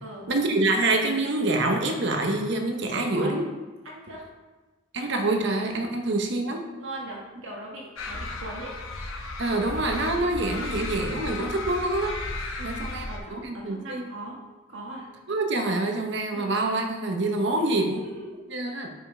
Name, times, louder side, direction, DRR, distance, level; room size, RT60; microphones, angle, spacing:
voice 1, 0.3-3.4 4.9-6.6 9.4-12.1 12.6-13.0 13.3-14.1 15.3-18.0 18.5-18.9, right 2 dB, 55° right, 4 dB, 0.9 m, -26 dB
voice 2, 2.9-3.4 3.8-4.2 6.8-8.8 12.6-14.4 14.7-15.1 16.3-16.6 17.6-18.3, right 1 dB, 75° right, -3 dB, 1.3 m, -39 dB
sound 1, 8.0-13.2, left 2 dB, 80° left, 0.9 m, -34 dB
5.4 x 5.3 x 4.7 m, 1.2 s
head